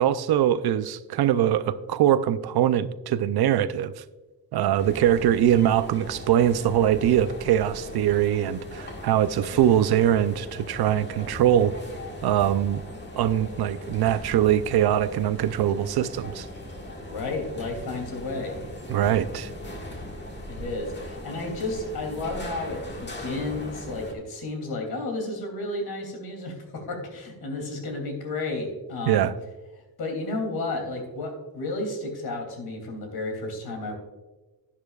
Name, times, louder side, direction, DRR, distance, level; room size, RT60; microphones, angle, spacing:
voice 1, 0.0-3.9 4.5-11.7 12.2-12.8 13.2-16.5 18.9-19.5 29.1-29.3, right 11 dB, 80° right, 0.6 m, -22 dB
sound 1, 4.8-24.1, left 1 dB, 30° left, 1.8 m, -39 dB
voice 2, 17.1-18.6 19.9-20.0 20.5-29.3 30.0-33.9, left 2 dB, 80° left, 3.0 m, -32 dB
11.5 x 10.0 x 2.4 m
cardioid pair, 120°, 37 cm